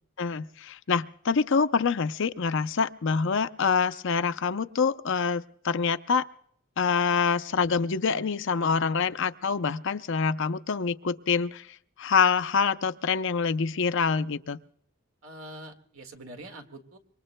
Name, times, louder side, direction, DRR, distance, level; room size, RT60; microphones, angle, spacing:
voice 1, 0.2-6.2 6.8-11.7 12.0-14.6, left 5 dB, 55° left, 12 dB, 0.6 m, -26 dB
voice 2, 15.2-17.0, right 1 dB, 65° right, 6 dB, 1.9 m, -44 dB
26.0 x 24.0 x 2.2 m, 0.67 s
head